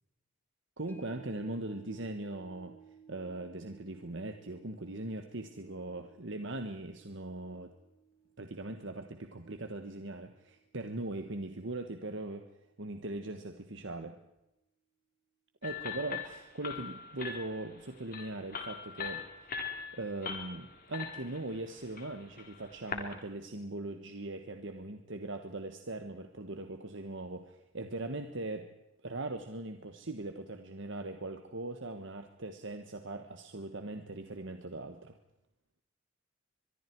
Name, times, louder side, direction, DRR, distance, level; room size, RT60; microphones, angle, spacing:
voice 1, 0.8-2.8 3.1-7.7 8.4-12.5 12.8-14.2 15.6-19.2 19.5-19.6 19.9-28.7 29.0-35.2, right 2 dB, 60° right, 7 dB, 1.5 m, -40 dB
sound 1, 0.9-11.3 11.6-11.7, right 5 dB, 10° left, 1.3 m, -58 dB
sound 2, 15.6-23.1, left 6 dB, 45° left, 3.9 m, -42 dB
23.5 x 23.5 x 4.7 m, 0.90 s
head